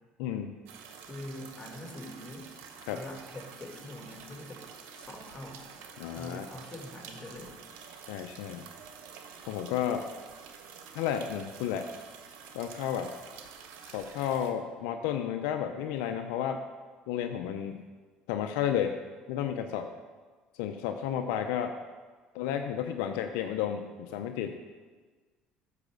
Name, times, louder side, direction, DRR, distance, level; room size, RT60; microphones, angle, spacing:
voice 1, 0.2-0.5 2.9-3.0 6.0-6.5 8.1-8.6 9.5-10.0 10.9-11.9 12.5-13.1 13.9-16.6 17.1-17.8 18.3-18.9 19.3-19.9 20.6-21.7 22.3-24.7, left 9 dB, 80° left, 6 dB, 0.5 m, -32 dB
sound 1, 0.7-14.5, right 6 dB, 75° right, 0.9 m, -49 dB
voice 2, 1.1-2.5 2.9-4.6 4.9-5.6 6.1-7.5, left 1 dB, 20° left, 0 dB, 2.6 m, -44 dB
9.7 x 4.8 x 6.7 m, 1.4 s
supercardioid pair, 70°, 4 cm